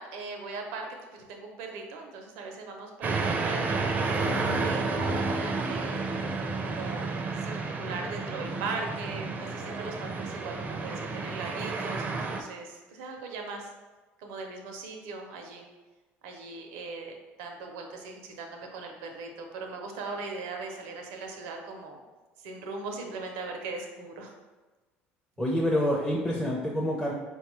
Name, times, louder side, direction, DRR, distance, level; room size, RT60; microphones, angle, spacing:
voice 1, 0.0-6.0 6.6-7.1 7.4-13.7 14.2-15.6 16.2-22.0 22.4-24.3, right 3 dB, 85° right, 3 dB, 0.6 m, -39 dB
sound 1, 3.0-12.4, right 3 dB, 40° right, 0.4 m, -31 dB
voice 2, 25.4-27.1, equal, 10° left, -4 dB, 0.6 m, -27 dB
4.2 x 2.2 x 3.0 m, 1.2 s
supercardioid pair, 95°, 5 cm